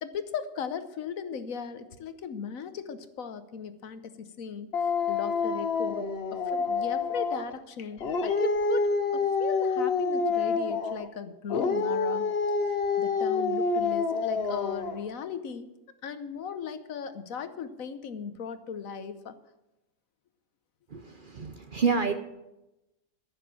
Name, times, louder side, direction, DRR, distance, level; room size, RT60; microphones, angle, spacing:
voice 1, 0.0-12.3 13.0-15.7 16.0-19.4, left 7 dB, 70° left, 11 dB, 1.3 m, -37 dB
Dog, 4.7-7.5 8.0-11.1 11.5-15.0, left 4 dB, 50° left, 1.0 m, -27 dB
voice 2, 20.9-22.1, right 5 dB, 45° right, 7 dB, 0.8 m, -28 dB
14.0 x 6.9 x 7.5 m, 0.95 s
omnidirectional pair, 1.5 m